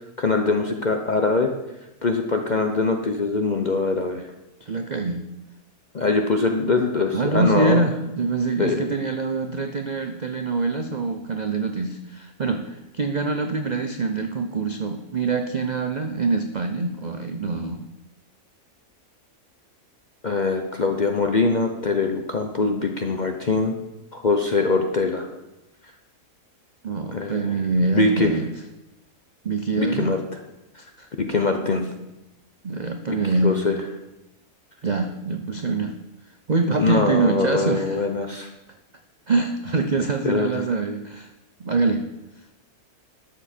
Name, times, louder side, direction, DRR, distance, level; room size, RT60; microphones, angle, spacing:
voice 1, 0.2-1.5 2.0-4.2 5.9-7.8 8.6-8.9 20.2-23.7 24.1-25.3 27.1-27.5 27.9-28.3 29.8-30.2 31.2-31.8 33.1-33.2 33.4-33.8 36.8-38.5 40.2-40.6, left 3 dB, 45° left, 4 dB, 0.6 m, -22 dB
voice 2, 4.6-5.2 7.1-17.8 26.8-28.5 29.4-30.1 31.0-31.1 32.6-33.6 34.8-35.9 36.5-38.0 39.3-41.3 41.6-42.1, right 3 dB, 70° right, 6 dB, 0.4 m, -24 dB
12.0 x 7.1 x 4.3 m, 0.94 s
omnidirectional pair, 1.7 m